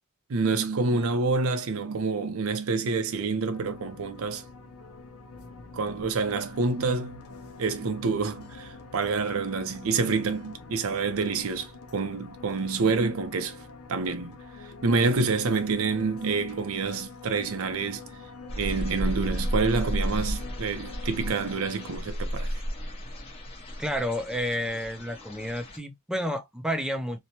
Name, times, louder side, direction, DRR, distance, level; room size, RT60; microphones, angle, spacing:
voice 1, 0.3-4.4 5.7-7.2 7.6-13.6 13.9-14.4 14.8-18.0 18.6-22.5, right 4 dB, 70° right, 0.5 m, -27 dB
sound 1, 3.5-21.9, left 3 dB, 85° left, 0.6 m, -45 dB
sound 2, 18.5-25.8, equal, 25° left, 0.8 m, -33 dB
voice 2, 23.8-27.2, equal, 5° right, 0.4 m, -30 dB
3.0 x 2.1 x 2.7 m
head